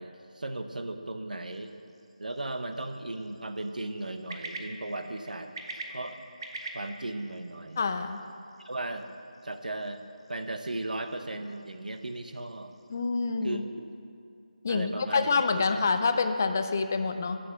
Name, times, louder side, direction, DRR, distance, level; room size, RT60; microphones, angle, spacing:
voice 1, 0.0-1.7 2.2-5.5 5.9-6.2 6.7-7.8 8.6-9.1 9.4-10.0 10.3-12.7 13.4-13.9 14.7-15.3 15.7-15.8, right 2 dB, 85° right, 7 dB, 0.8 m, -36 dB
sound 1, 1.4-13.1, right 2 dB, 40° right, 0.8 m, -47 dB
voice 2, 7.8-8.2 12.9-13.6 14.6-17.4, left 4 dB, 20° left, 8 dB, 0.3 m, -27 dB
7.6 x 6.3 x 6.7 m, 2.5 s
figure-of-eight pair, 170°, 4 cm